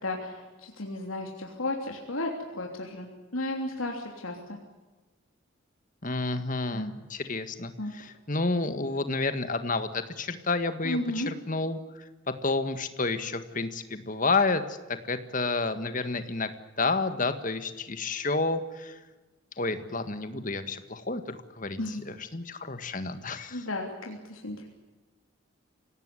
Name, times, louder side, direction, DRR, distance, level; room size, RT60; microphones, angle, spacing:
voice 1, 0.0-4.6 6.7-6.9 7.8-7.9 10.8-11.3 21.8-22.0 23.5-24.7, left 1 dB, 80° left, 1 dB, 3.2 m, -34 dB
voice 2, 6.0-16.5 16.8-19.0 19.6-23.7, left 3 dB, 40° left, 10 dB, 1.7 m, -30 dB
25.0 x 17.5 x 9.9 m, 1.2 s
head